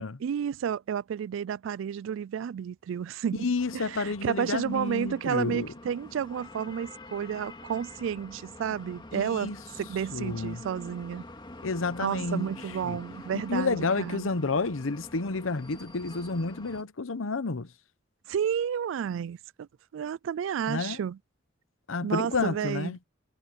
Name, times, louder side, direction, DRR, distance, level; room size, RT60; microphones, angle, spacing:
voice 1, 0.0-11.2 12.0-14.3 18.3-19.7 19.9-21.2 22.0-23.0, right 8 dB, 70° right, 0.3 m, -31 dB
voice 2, 3.4-5.7 9.1-9.6 10.1-10.6 11.6-12.5 12.8-13.0 13.3-17.7 20.7-21.0 21.9-23.0, left 3 dB, 80° left, 0.9 m, -30 dB
sound 1, 3.6-16.8, left 1 dB, 25° left, 2.4 m, -46 dB
head